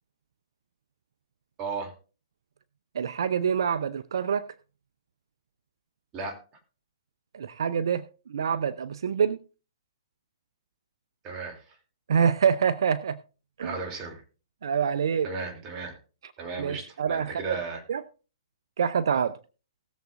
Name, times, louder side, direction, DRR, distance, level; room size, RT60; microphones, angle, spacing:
voice 1, 1.6-1.9 6.1-6.4 11.2-11.8 13.6-14.2 15.2-16.0 16.4-17.8, right 4 dB, 25° right, 3 dB, 2.9 m, -35 dB
voice 2, 2.9-4.5 7.3-8.0 8.3-9.4 12.1-13.2 13.6-13.7 14.6-15.3 16.6-17.4 17.9-18.0 18.8-19.4, right 7 dB, 70° right, 13 dB, 0.7 m, -26 dB
19.5 x 7.4 x 2.6 m, 0.34 s
hypercardioid pair, 135°, 3 cm